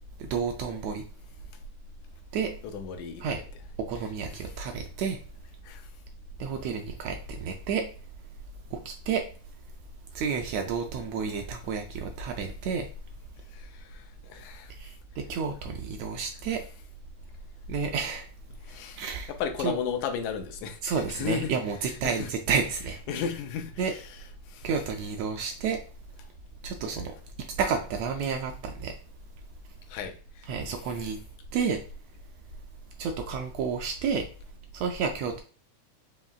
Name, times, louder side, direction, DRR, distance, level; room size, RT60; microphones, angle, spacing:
voice 1, 0.2-1.0 2.3-2.5 3.2-3.4 3.9-5.2 6.4-7.8 8.7-9.2 10.1-12.9 14.8-16.6 17.7-18.3 19.0-19.3 19.6-19.8 20.8-23.0 23.8-23.9 24.6-25.8 26.6-27.1 27.6-29.0 30.5-31.2 31.5-31.8 33.0-34.3 34.7-35.4, right 6 dB, 80° right, 1.6 m, -30 dB
voice 2, 2.7-3.4 5.6-5.9 13.5-14.7 18.6-19.0 19.3-21.5 22.0-22.3 23.1-24.0 24.5-24.7 29.9-30.5, left 7 dB, 85° left, 2.1 m, -34 dB
5.5 x 2.9 x 2.3 m
omnidirectional pair, 3.4 m